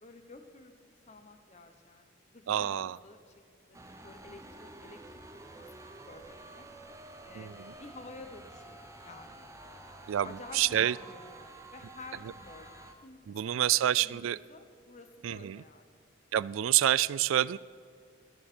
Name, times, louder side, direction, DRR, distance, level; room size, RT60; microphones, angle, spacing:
voice 1, 0.0-5.0 5.5-6.7 7.2-9.4 10.2-13.6 13.9-16.0, left 3 dB, 35° left, 7 dB, 1.2 m, -51 dB
voice 2, 2.5-3.0 7.4-7.5 10.1-10.3 10.5-10.9 13.3-14.4 15.2-15.6 16.3-17.6, right 12 dB, 80° right, 20 dB, 0.3 m, -27 dB
sound 1, 3.7-12.9, right 2 dB, 15° right, 0.8 m, -50 dB
14.5 x 13.5 x 4.4 m, 2.3 s
head